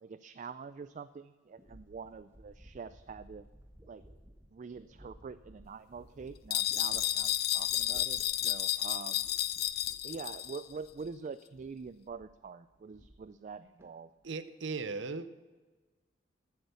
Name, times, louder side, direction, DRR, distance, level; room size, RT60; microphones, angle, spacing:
voice 1, 0.0-3.5 3.9-4.0 4.5-9.3 10.0-14.1, right 5 dB, 40° right, 14 dB, 0.3 m, -45 dB
sound 1, 1.6-11.3 11.5-12.4 12.7-13.5 13.8-14.3, equal, 15° right, 1.4 m, -57 dB
sound 2, 6.5-10.6, left 13 dB, 55° left, 0.5 m, -32 dB
voice 2, 14.2-15.3, right 4 dB, 70° right, 13 dB, 0.7 m, -37 dB
14.5 x 8.1 x 6.9 m, 1.3 s
head